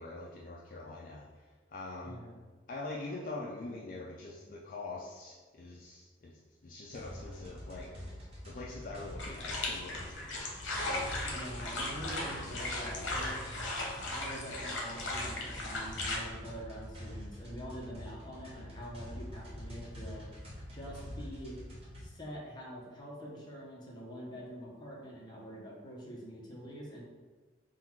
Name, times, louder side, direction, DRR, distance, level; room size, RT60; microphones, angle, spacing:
voice 1, 0.0-2.2 2.7-8.0 8.4-10.5, left 2 dB, 45° left, -3 dB, 0.4 m, -44 dB
voice 2, 2.0-2.4 11.2-13.6 14.1-20.3 20.7-21.6 22.0-27.0, equal, 20° left, -4 dB, 0.8 m, -45 dB
sound 1, 6.9-22.1, left 1 dB, 30° right, 0.9 m, -46 dB
sound 2, 9.2-16.2, left 2 dB, 75° left, 0.8 m, -37 dB
3.8 x 2.4 x 4.5 m, 1.4 s
head